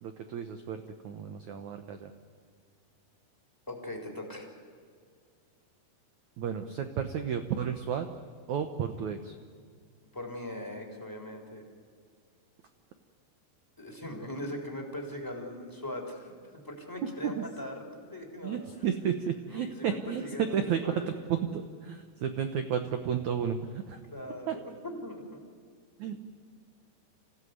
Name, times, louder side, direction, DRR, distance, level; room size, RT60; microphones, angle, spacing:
voice 1, 0.0-2.1 6.4-8.1 8.5-9.3 17.2-17.5 18.4-20.2 20.5-20.8 21.3-24.0 24.5-24.6 26.0-26.3, right 8 dB, 80° right, 7 dB, 1.6 m, -32 dB
voice 2, 3.7-4.5 10.1-11.6 13.8-16.3 16.6-18.6 19.5-21.1 24.1-25.4, left 1 dB, 5° left, 1 dB, 3.0 m, -40 dB
27.0 x 16.5 x 9.6 m, 2.1 s
omnidirectional pair, 5.0 m